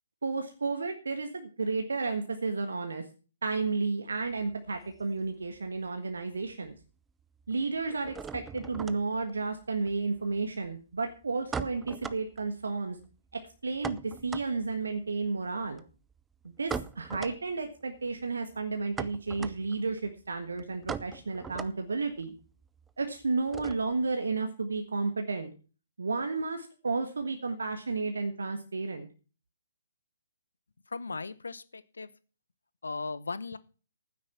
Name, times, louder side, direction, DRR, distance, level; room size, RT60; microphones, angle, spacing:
voice 1, 0.2-3.0 3.4-6.7 7.5-13.0 13.3-15.8 16.4-22.3 23.0-25.5 26.0-29.1, right 3 dB, 60° right, 6 dB, 1.5 m, -32 dB
sound 1, 4.2-5.9 6.1-6.8 7.1-24.1, right 6 dB, 10° right, 0.5 m, -42 dB
voice 2, 30.9-32.1 32.8-33.6, left 4 dB, 65° left, 17 dB, 0.9 m, -37 dB
12.0 x 9.6 x 5.9 m, 0.37 s
figure-of-eight pair, 130°, 0 cm